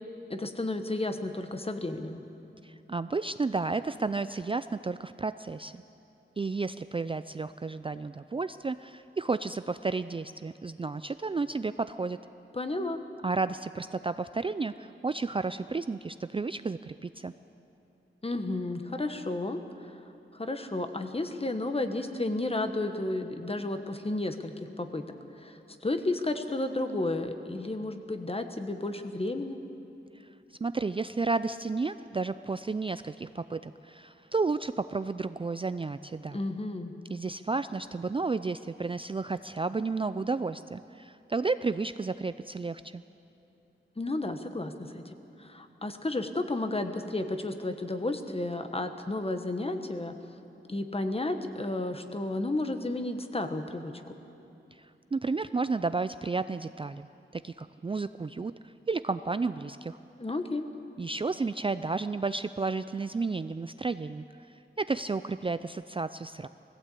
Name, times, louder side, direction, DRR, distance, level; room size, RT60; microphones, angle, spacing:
voice 1, 0.3-2.2 12.5-13.0 18.2-20.0 20.3-25.0 25.4-29.6 36.3-36.9 44.0-50.1 50.7-53.9 60.2-60.7, left 2 dB, 30° left, 7 dB, 1.2 m, -32 dB
voice 2, 2.6-5.8 6.4-12.2 13.2-17.3 30.6-36.4 37.1-43.0 54.7-57.1 57.3-60.0 61.0-64.2 64.8-66.5, right 4 dB, 25° right, 12 dB, 0.3 m, -32 dB
20.0 x 15.5 x 8.4 m, 2.8 s
wide cardioid pair, 105°, 20 cm